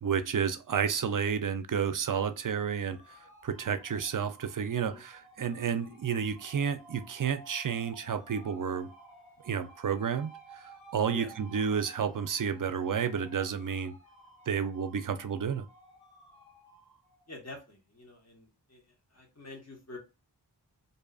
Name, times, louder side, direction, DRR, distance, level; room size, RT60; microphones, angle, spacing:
voice 1, 0.0-8.9 9.4-13.9 14.5-15.6, right 7 dB, 50° right, 0.4 m, -31 dB
h-b eerie space, 2.1-17.4, equal, 55° left, 1.0 m, -58 dB
voice 2, 4.7-5.0 11.1-11.3 17.3-20.0, left 2 dB, 35° left, 1.2 m, -47 dB
sound 1, 6.4-12.3, right 6 dB, 85° left, 0.8 m, -54 dB
2.7 x 2.3 x 2.3 m
wide cardioid pair, 40°, 43 cm